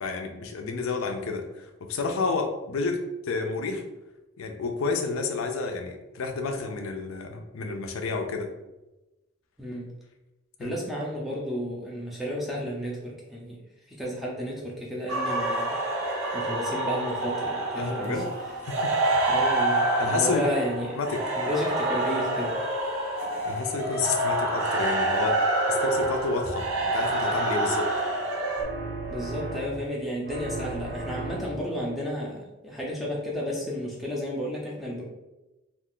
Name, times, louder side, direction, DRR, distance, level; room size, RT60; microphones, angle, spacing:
voice 1, 0.0-3.0 3.2-3.8 4.4-8.5 10.6-10.8 17.8-18.2 18.6-18.9 20.0-20.5 20.9-21.2 23.4-25.4 25.7-26.7 26.9-27.9, left 4 dB, 85° left, 5 dB, 0.5 m, -30 dB
voice 2, 10.6-13.6 13.9-15.7 16.3-18.2 19.3-21.0 21.4-22.6 29.1-35.0, equal, ahead, -4 dB, 0.5 m, -32 dB
sound 1, 15.1-28.6, right 2 dB, 85° right, 0.7 m, -27 dB
sound 2, 28.5-30.0 30.3-31.8, right 2 dB, 45° right, 0.6 m, -35 dB
2.4 x 2.4 x 3.6 m, 1.0 s
head